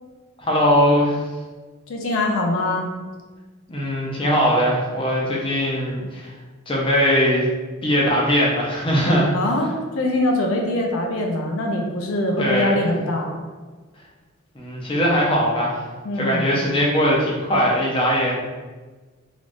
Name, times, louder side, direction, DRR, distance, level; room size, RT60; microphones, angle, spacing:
voice 1, 0.4-1.2 3.7-6.3 6.7-7.5 7.8-9.3 12.4-12.7 14.5-15.8 16.2-18.4, equal, 25° left, -4 dB, 0.5 m, -20 dB
voice 2, 1.9-2.9 9.3-13.4 16.0-16.4, left 1 dB, 75° left, 1 dB, 0.5 m, -23 dB
3.4 x 2.4 x 2.5 m, 1.3 s
head